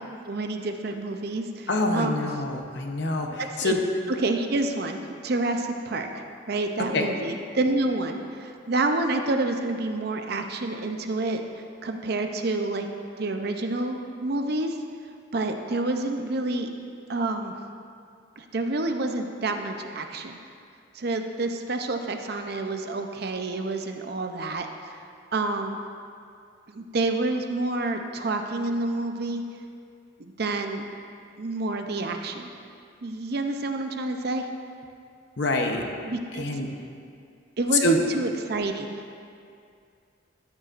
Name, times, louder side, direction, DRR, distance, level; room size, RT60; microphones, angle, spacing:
voice 1, 0.3-2.4 3.4-3.8 4.1-11.4 11.8-12.9 13.2-14.8 15.3-16.7 17.1-17.5 18.4-20.4 20.9-24.7 25.3-25.8 26.7-29.4 30.2-30.9 31.4-32.5 33.0-34.5 36.0-36.4 37.6-39.0, right 2 dB, 50° right, 5 dB, 0.6 m, -28 dB
voice 2, 1.7-3.8 6.9-7.1 35.4-35.8 36.3-36.7 37.8-38.0, left 1 dB, 60° left, 3 dB, 0.9 m, -25 dB
13.0 x 9.3 x 2.5 m, 2.4 s
head